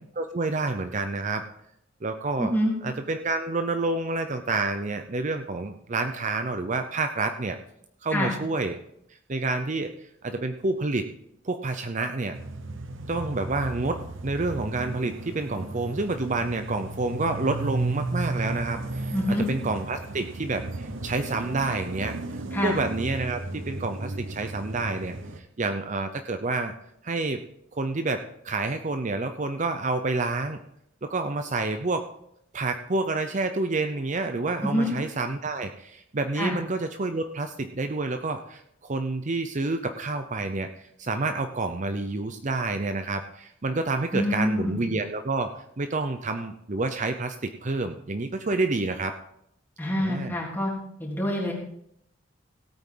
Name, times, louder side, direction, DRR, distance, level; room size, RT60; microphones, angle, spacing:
voice 1, 0.2-1.4 2.0-2.5 2.8-7.6 8.0-8.8 9.3-9.9 10.2-11.1 11.4-12.4 13.1-26.7 27.0-27.4 27.7-30.6 31.0-32.1 32.5-49.2 50.0-50.4, right 3 dB, 40° right, 7 dB, 0.7 m, -29 dB
voice 2, 2.4-2.7 8.1-8.3 19.1-19.5 22.5-22.8 34.6-34.9 36.4-36.6 44.1-44.8 49.8-50.7 51.0-51.5, equal, 10° left, -4 dB, 3.4 m, -26 dB
sound 1, 12.3-25.4, right 2 dB, 80° right, 1.0 m, -35 dB
17.0 x 8.8 x 3.8 m, 0.74 s
head